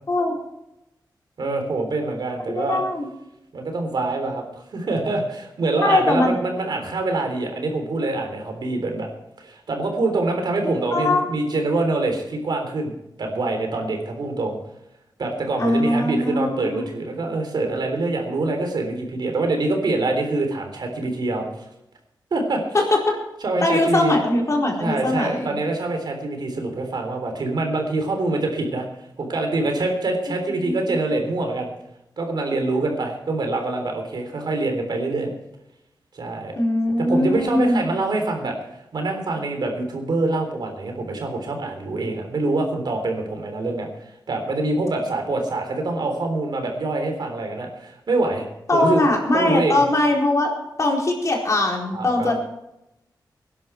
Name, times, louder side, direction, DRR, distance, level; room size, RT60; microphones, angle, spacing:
voice 1, 1.4-2.8 3.5-9.1 9.4-12.9 13.2-14.6 15.2-21.7 22.3-22.6 23.4-24.2 24.8-28.9 29.2-31.7 32.2-35.3 36.1-36.5 37.0-38.6 38.9-49.1 49.3-49.8 51.9-52.3, right 2 dB, 70° right, 4 dB, 3.7 m, -25 dB
voice 2, 2.6-3.1 5.8-6.3 10.6-11.3 15.6-16.8 22.7-23.0 23.6-25.6 30.6-31.0 36.6-37.8 48.7-50.5 50.8-52.3, left 2 dB, 40° left, -1 dB, 4.4 m, -21 dB
20.0 x 11.0 x 4.6 m, 0.86 s
wide cardioid pair, 90°, 8 cm